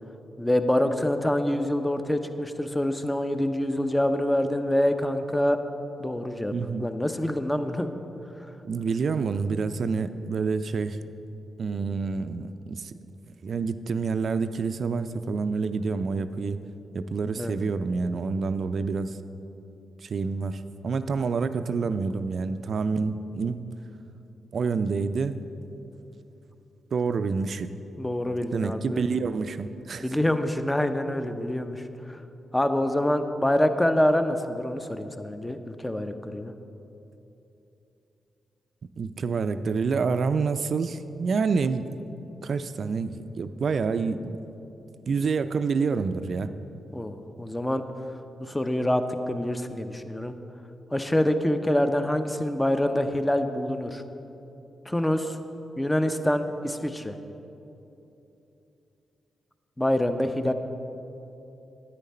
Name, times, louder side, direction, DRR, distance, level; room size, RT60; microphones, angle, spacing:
voice 1, 0.4-5.6 6.0-6.5 6.8-7.9 17.4-17.6 28.0-29.0 30.0-31.8 32.1-32.2 32.5-36.5 46.9-47.8 48.4-50.3 50.9-54.0 54.9-55.4 55.8-57.2 59.8-60.5, left 1 dB, 15° left, 8 dB, 0.7 m, -26 dB
voice 2, 6.5-6.9 8.6-11.0 11.6-12.9 13.4-16.6 16.9-19.2 20.0-23.7 24.5-25.4 26.9-27.7 28.5-30.1 39.0-41.9 42.4-44.4 45.1-46.5, right 5 dB, 60° right, 11 dB, 0.4 m, -28 dB
10.0 x 9.1 x 4.3 m, 3.0 s
supercardioid pair, 40°, 0 cm